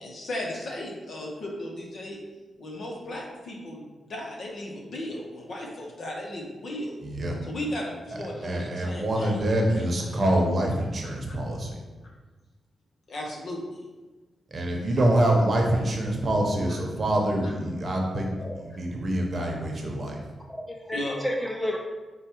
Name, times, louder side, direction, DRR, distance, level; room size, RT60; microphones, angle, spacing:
voice 1, 0.0-2.2 2.6-7.0 7.4-9.4 9.7-9.9 11.2-11.4 13.1-13.8 16.7-16.8 17.4-17.5 20.9-21.2, left 1 dB, 65° left, -1 dB, 0.9 m, -36 dB
voice 2, 7.0-7.4 8.1-8.2 8.4-11.8 14.5-18.3 18.5-20.2, right 1 dB, 45° right, 0 dB, 0.8 m, -25 dB
voice 3, 18.4-18.7 20.5-21.8, left 1 dB, 10° left, 0 dB, 0.5 m, -31 dB
4.8 x 2.3 x 4.4 m, 1.2 s
cardioid pair, 85°, 0 cm